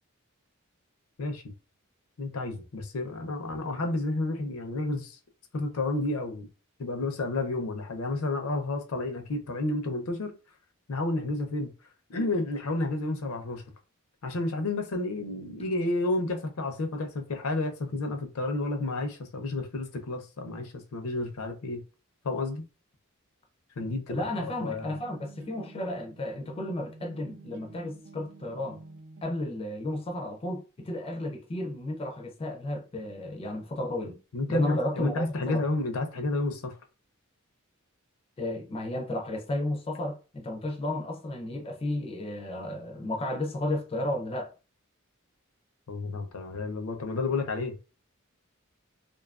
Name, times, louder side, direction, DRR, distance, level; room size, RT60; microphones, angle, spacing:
voice 1, 2.2-5.2 5.5-6.5 6.8-10.3 10.9-11.7 12.1-13.6 14.2-21.8 22.2-22.6 23.8-24.9 34.3-36.8 45.9-47.8, left 2 dB, 75° left, 0.5 m, -31 dB
voice 2, 24.1-28.8 29.2-34.2 34.5-35.6 38.4-44.5, left 1 dB, 25° left, 0.4 m, -33 dB
sound 1, 24.1-29.2, right 3 dB, 55° right, 0.3 m, -49 dB
2.6 x 2.3 x 2.3 m
head